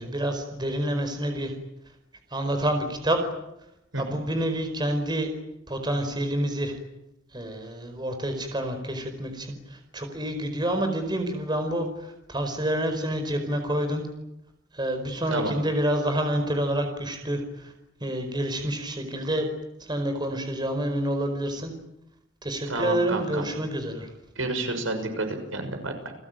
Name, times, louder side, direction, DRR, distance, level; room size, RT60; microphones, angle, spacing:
voice 1, 0.0-1.5 2.3-3.2 4.0-5.3 5.7-6.8 7.3-14.1 14.7-17.7 18.0-19.5 19.8-21.7 22.4-24.1, right 1 dB, 20° right, 6 dB, 4.7 m, -28 dB
voice 2, 22.7-23.4 24.4-26.1, right 2 dB, 85° right, 6 dB, 6.4 m, -30 dB
30.0 x 21.0 x 9.2 m, 0.86 s
head